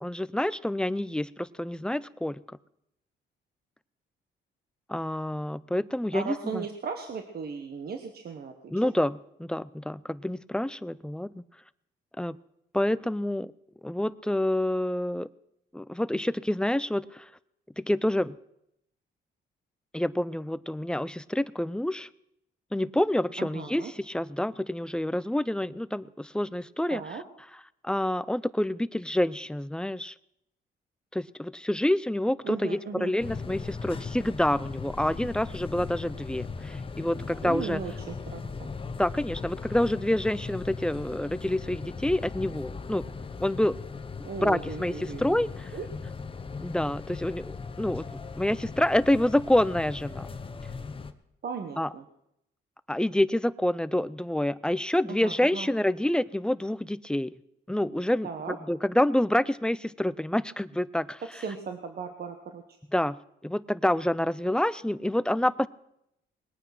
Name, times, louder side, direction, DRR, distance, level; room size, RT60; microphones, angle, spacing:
voice 1, 0.0-2.4 4.9-6.7 8.7-11.4 12.2-12.4 12.7-13.5 13.8-15.3 15.7-17.3 17.8-18.4 19.9-22.1 22.7-27.2 27.8-30.1 31.1-37.8 39.0-43.1 43.4-43.7 44.4-45.7 46.6-48.1 48.4-50.3 51.8-51.9 52.9-57.3 57.7-61.2 62.9-63.2 63.4-65.7, left 1 dB, 5° left, 18 dB, 0.4 m, -27 dB
voice 2, 6.1-8.5 23.4-23.9 26.9-27.2 32.4-33.1 37.4-38.7 44.2-45.4 45.7-45.9 51.4-52.0 55.1-55.7 58.2-58.6 61.3-62.6, right 5 dB, 50° right, 6 dB, 1.3 m, -36 dB
sound 1, 33.2-51.1, left 4 dB, 25° left, 1.0 m, -38 dB
20.5 x 9.0 x 6.0 m, 0.80 s
cardioid pair, 90°, 20 cm